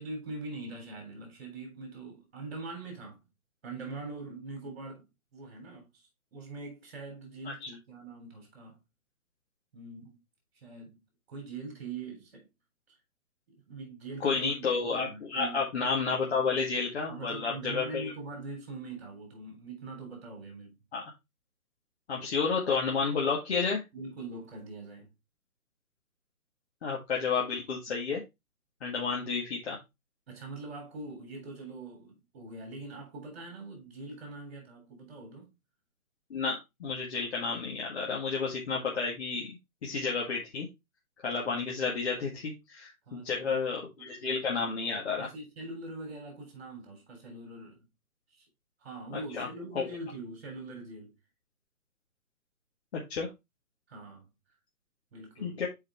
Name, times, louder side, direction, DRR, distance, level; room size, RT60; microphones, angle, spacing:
voice 1, 0.0-3.2 3.6-5.1 5.3-8.8 9.7-10.2 10.6-11.0 11.3-12.5 12.9-13.0 13.5-14.6 14.9-15.7 16.2-16.6 17.1-20.8 23.9-25.1 30.3-35.5 43.1-43.6 44.0-44.1 45.2-47.8 48.3-48.5 48.8-51.1 53.9-54.3 55.1-55.6, right 3 dB, 45° right, 3.6 m, -43 dB
voice 2, 14.2-18.1 20.9-21.0 22.1-23.8 26.8-28.2 28.8-29.8 36.3-39.4 39.8-40.7 41.2-45.3 49.1-49.5 49.8-49.9 52.9-53.3 55.4-55.7, left 5 dB, 45° left, 1.9 m, -31 dB
7.6 x 4.8 x 3.3 m
figure-of-eight pair, 135°, 44 cm